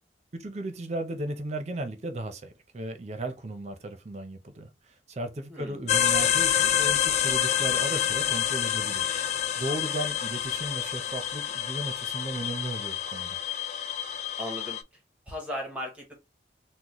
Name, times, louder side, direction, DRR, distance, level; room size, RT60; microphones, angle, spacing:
voice 1, 0.4-9.1 9.6-13.4, right 1 dB, 40° right, 0.6 m, -35 dB
voice 2, 5.5-5.9 14.4-14.8 15.3-16.1, left 1 dB, 10° right, 0.9 m, -36 dB
sound 1, 5.9-14.8, left 10 dB, 40° left, 0.3 m, -27 dB
3.9 x 2.1 x 3.0 m
head